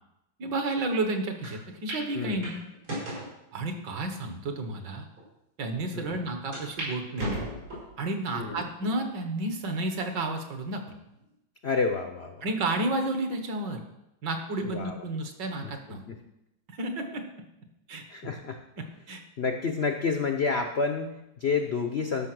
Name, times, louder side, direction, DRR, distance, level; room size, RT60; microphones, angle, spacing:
voice 1, 0.4-2.6 3.5-5.1 5.6-7.5 8.0-10.8 12.4-13.8 14.2-16.0 16.7-17.2 17.9-18.0 19.1-19.2, right 2 dB, 65° right, 5 dB, 1.9 m, -31 dB
sound 1, 1.4-1.5 1.9-2.0 2.4-3.3 4.0-4.1 4.8-4.9 5.2-5.3 6.5-6.9 7.2-7.9 8.5-8.9 9.5-9.6 10.7-11.1, right 1 dB, 85° right, 5.8 m, -35 dB
voice 2, 2.1-2.5 5.9-6.2 8.3-8.7 11.6-12.4 14.6-15.0 15.6-16.2 18.1-18.6 19.4-22.3, left 5 dB, 65° left, 5 dB, 0.6 m, -30 dB
12.5 x 6.0 x 6.1 m, 0.87 s
omnidirectional pair, 2.1 m